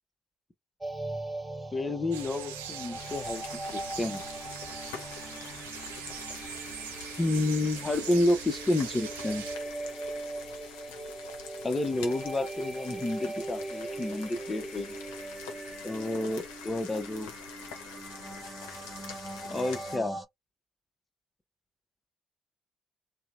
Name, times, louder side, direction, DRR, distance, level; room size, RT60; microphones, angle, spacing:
sound 1, 0.8-20.3, right 2 dB, 20° right, 0.6 m, -41 dB
voice 1, 1.7-3.4 3.7-4.2 7.2-9.5 11.6-15.0 15.8-17.3 19.5-20.2, left 2 dB, 25° left, 0.7 m, -30 dB
sound 2, 2.1-9.6, right 9 dB, 80° right, 0.4 m, -42 dB
sound 3, 3.0-20.0, left 6 dB, 75° left, 0.6 m, -46 dB
2.8 x 2.0 x 2.3 m
hypercardioid pair, 45°, 0 cm